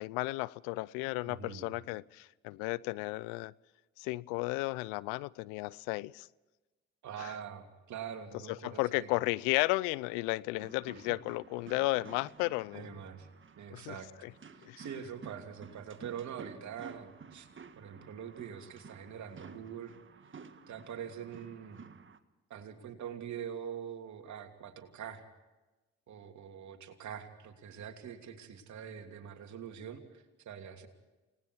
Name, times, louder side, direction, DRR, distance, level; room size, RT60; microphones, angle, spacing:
voice 1, 0.0-3.5 4.0-6.3 7.2-7.3 8.5-12.9 13.7-14.0 14.2-14.3 14.6-14.8, left 22 dB, 80° left, 22 dB, 0.6 m, -34 dB
voice 2, 1.3-1.8 7.0-9.1 11.1-11.2 12.7-13.3 13.6-14.1 14.5-17.5 17.7-19.9 20.7-21.9 22.5-25.2 26.1-30.9, right 8 dB, 60° right, 5 dB, 3.0 m, -44 dB
sound 1, 10.6-22.2, right 5 dB, 40° right, 1.8 m, -53 dB
29.0 x 19.5 x 4.7 m, 1.1 s
hypercardioid pair, 50°, 32 cm